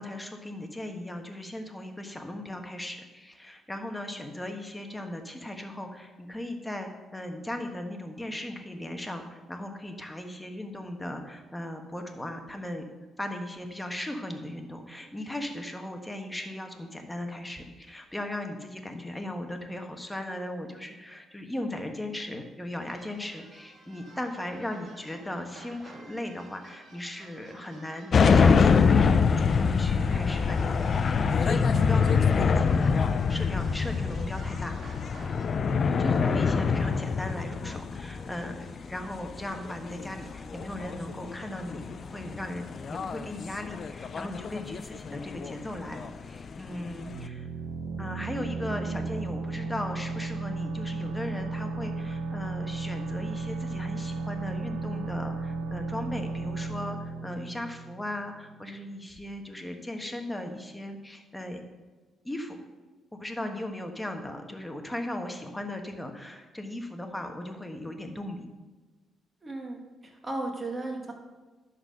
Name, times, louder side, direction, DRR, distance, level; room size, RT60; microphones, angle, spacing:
voice 1, 0.0-12.8 13.2-33.0 33.3-34.8 35.9-47.5 48.0-61.6 62.2-62.6 63.1-68.5, left 1 dB, 10° left, 4 dB, 1.3 m, -37 dB
sound 1, 22.8-35.5, right 3 dB, 55° right, 2.0 m, -51 dB
sound 2, 28.1-47.3, left 5 dB, 45° left, 0.5 m, -25 dB
voice 2, 35.9-36.3 69.4-71.1, right 2 dB, 25° right, 1 dB, 2.0 m, -35 dB
sound 3, 47.1-58.6, right 3 dB, 80° right, 0.8 m, -34 dB
11.0 x 4.2 x 6.3 m, 1.3 s
cardioid pair, 90°, 0 cm